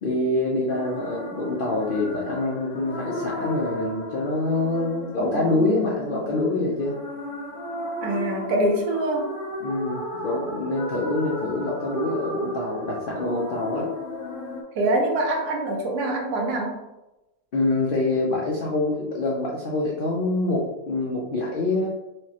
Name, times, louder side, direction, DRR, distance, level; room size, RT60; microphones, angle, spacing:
voice 1, 0.0-6.9 9.6-13.9 17.5-21.9, left 2 dB, 85° left, -3 dB, 0.4 m, -25 dB
sound 1, 0.7-14.6, left 1 dB, 60° left, 1.0 m, -34 dB
voice 2, 8.0-9.3 14.7-16.8, right 1 dB, 80° right, 0 dB, 1.3 m, -24 dB
4.9 x 2.0 x 2.8 m, 0.98 s
omnidirectional pair, 1.7 m